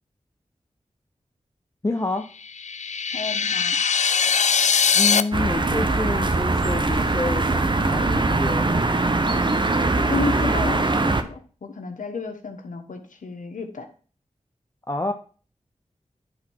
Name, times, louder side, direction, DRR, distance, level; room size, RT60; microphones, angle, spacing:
voice 1, 1.8-2.3 4.9-8.8 14.9-15.1, left 2 dB, 25° left, 5 dB, 0.6 m, -28 dB
sound 1, 2.4-5.2, left 6 dB, 65° left, 0.4 m, -21 dB
voice 2, 3.1-3.8 10.0-13.9, left 5 dB, 90° left, 5 dB, 1.1 m, -32 dB
sound 2, 5.3-11.2, right 2 dB, 40° right, 0.8 m, -22 dB
10.5 x 3.6 x 4.5 m, 0.41 s
cardioid pair, 45°, 13 cm